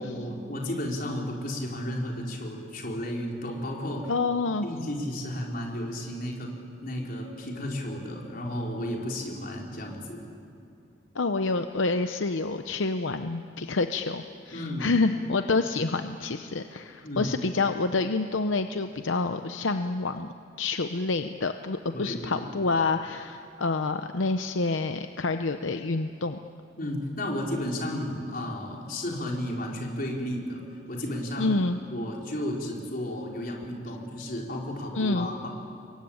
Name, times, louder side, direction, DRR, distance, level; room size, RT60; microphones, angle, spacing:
voice 1, 0.0-4.1 4.6-6.5 6.8-10.2 14.5-14.9 17.0-17.3 21.9-22.5 26.8-30.6 30.9-31.5 31.9-35.5, left 1 dB, 50° left, -1 dB, 4.3 m, -33 dB
voice 2, 4.1-4.7 11.1-20.3 20.6-26.4 31.4-31.8 34.2-34.3 34.9-35.3, left 3 dB, 75° left, 8 dB, 0.8 m, -28 dB
28.5 x 23.0 x 8.8 m, 2.5 s
head